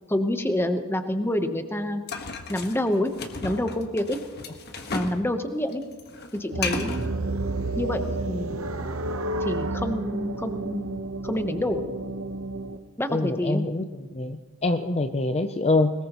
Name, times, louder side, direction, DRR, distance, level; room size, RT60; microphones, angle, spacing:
voice 1, 0.1-2.0 2.5-3.1 3.4-4.2 4.9-5.8 6.3-7.1 7.8-8.0 8.3-8.9 9.4-10.9 11.2-11.9 13.0-13.7, left 1 dB, 10° left, 7 dB, 0.9 m, -27 dB
sound 1, 2.1-5.2 5.5-7.1, left 4 dB, 45° left, 1.5 m, -34 dB
sound 2, 6.5-12.8, right 2 dB, 65° right, 0.9 m, -30 dB
voice 2, 13.1-13.9 14.1-15.9, left 2 dB, 30° left, 8 dB, 0.5 m, -25 dB
21.5 x 20.5 x 3.0 m, 1.5 s
head